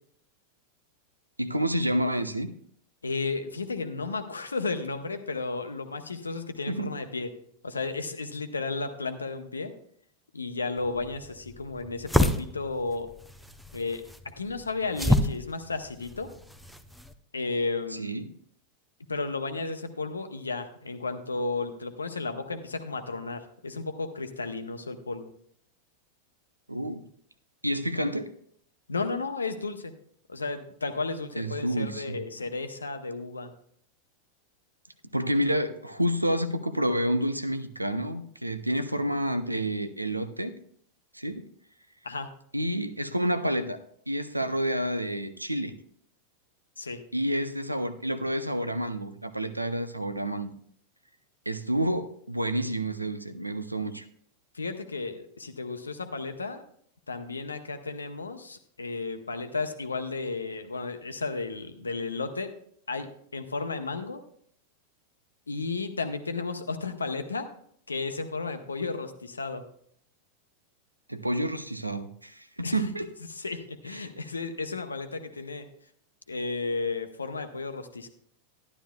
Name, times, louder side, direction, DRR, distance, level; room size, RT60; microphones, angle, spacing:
voice 1, 1.4-2.5 6.7-6.9 18.0-18.2 26.7-27.0 27.6-28.3 31.4-32.2 35.1-40.5 41.1-41.5 42.5-43.8 44.1-45.7 47.1-50.5 51.5-54.1 71.1-73.1 73.9-74.1, right 1 dB, 85° right, 12 dB, 0.6 m, -29 dB
voice 2, 3.0-7.3 7.6-9.7 10.3-13.1 13.7-14.0 14.4-16.3 17.3-18.2 19.1-25.3 28.9-29.9 30.3-33.5 42.0-42.3 46.8-47.0 54.5-56.6 57.1-62.5 62.9-64.2 65.5-67.5 67.9-69.6 72.6-72.8 73.3-75.7 76.3-78.1, left 3 dB, 75° left, 8 dB, 0.8 m, -33 dB
sound 1, 10.8-17.1, left 1 dB, ahead, 0.6 m, -30 dB
12.0 x 11.0 x 2.3 m, 0.64 s
figure-of-eight pair, 90°, 0 cm